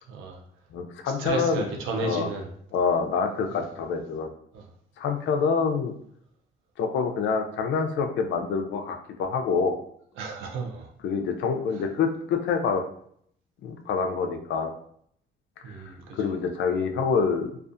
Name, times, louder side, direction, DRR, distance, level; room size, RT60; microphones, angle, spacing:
voice 1, 0.1-0.4 1.2-2.5 3.5-3.6 4.5-4.7 10.2-10.9 11.7-11.9 15.6-16.3, right 4 dB, 90° right, 1 dB, 0.6 m, -33 dB
voice 2, 0.7-1.7 2.0-2.3 2.7-4.3 5.0-5.9 6.8-9.8 11.0-12.8 13.6-14.7 15.7-17.5, left 5 dB, 70° left, 5 dB, 0.4 m, -26 dB
2.4 x 2.3 x 2.5 m, 0.66 s
cardioid pair, 90°, 20 cm